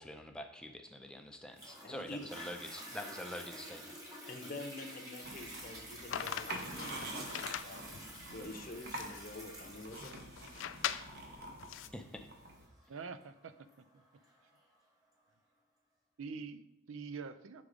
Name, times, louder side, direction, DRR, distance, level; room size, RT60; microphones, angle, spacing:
voice 1, 0.0-4.0 11.9-12.3, left 1 dB, 5° left, 4 dB, 0.4 m, -46 dB
Toilet flush, 1.6-14.6 15.2-15.3, equal, 20° right, 1.4 m, -50 dB
voice 2, 1.8-2.3 4.3-7.8 8.3-10.2, left 2 dB, 45° left, 2 dB, 0.7 m, -47 dB
sound 1, 5.2-12.7, right 2 dB, 50° right, 1.0 m, -47 dB
sound 2, 6.1-11.9, left 10 dB, 70° left, 0.3 m, -42 dB
voice 3, 12.9-13.5 13.9-14.0 16.2-17.6, right 5 dB, 80° right, 12 dB, 0.4 m, -45 dB
6.6 x 3.6 x 4.9 m, 0.93 s
head